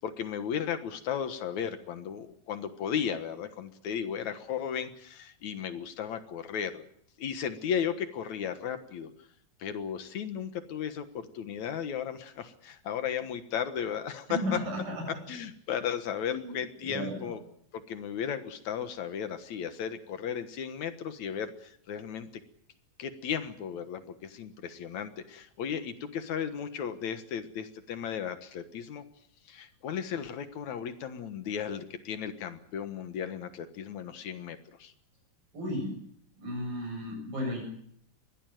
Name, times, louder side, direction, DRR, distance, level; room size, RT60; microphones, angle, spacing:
voice 1, 0.0-6.9 7.2-9.1 9.6-14.6 15.3-17.4 17.7-22.3 23.0-29.0 29.5-34.9, left 8 dB, 65° left, 10 dB, 2.5 m, -35 dB
voice 2, 14.3-15.0 16.3-17.4 35.5-36.0 36.4-37.6, left 1 dB, 85° right, 3 dB, 8.8 m, -34 dB
22.5 x 17.5 x 9.2 m, 0.69 s
omnidirectional pair, 3.9 m